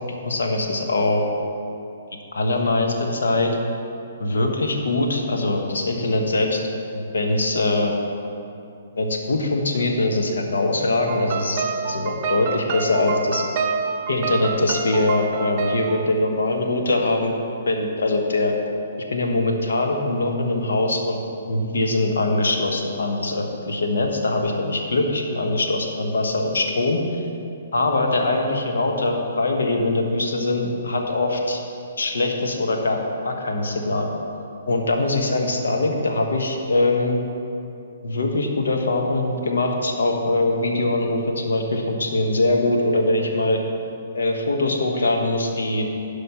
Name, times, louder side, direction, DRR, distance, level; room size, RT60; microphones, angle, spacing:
voice 1, 0.2-1.2 2.3-3.6 4.2-6.6 6.9-7.9 8.9-13.4 14.1-17.3 17.7-18.5 19.1-21.2 21.5-27.2 27.7-31.6 32.0-34.1 34.7-37.2 38.0-43.6 44.1-45.9, left 2 dB, 70° left, 2 dB, 1.2 m, -22 dB
sound 1, 11.1-16.1, right 5 dB, 40° right, 0.7 m, -28 dB
11.0 x 5.0 x 5.7 m, 2.6 s
figure-of-eight pair, 125°, 0 cm